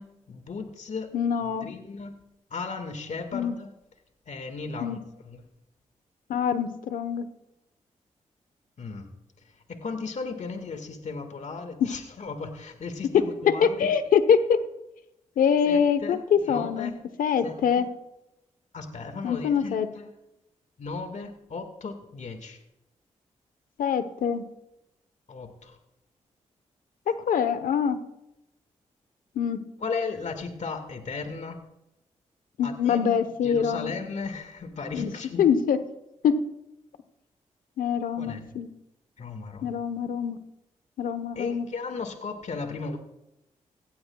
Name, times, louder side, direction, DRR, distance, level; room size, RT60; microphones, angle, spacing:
voice 1, 0.0-1.1 1.4-2.2 2.5-3.7 4.3-5.0 5.2-5.4 8.8-9.1 9.4-13.9 15.7-16.9 17.4-17.9 18.7-20.1 20.8-22.6 25.3-25.8 27.1-27.2 29.8-31.6 32.6-35.5 38.1-38.4 39.2-39.7 41.4-43.0, left 4 dB, 60° left, 6 dB, 1.8 m, -36 dB
voice 2, 1.1-1.7 3.3-3.5 4.8-5.0 6.3-7.3 11.8-11.9 13.6-14.6 15.4-16.9 17.2-17.9 19.2-19.9 23.8-24.4 27.1-28.0 29.3-29.6 32.6-33.9 34.9-35.1 35.4-35.8 36.2-36.4 37.8-38.7 39.6-40.4 41.0-41.7, left 7 dB, 80° left, 11 dB, 1.0 m, -24 dB
16.5 x 15.5 x 2.3 m, 0.88 s
supercardioid pair, 45°, 14 cm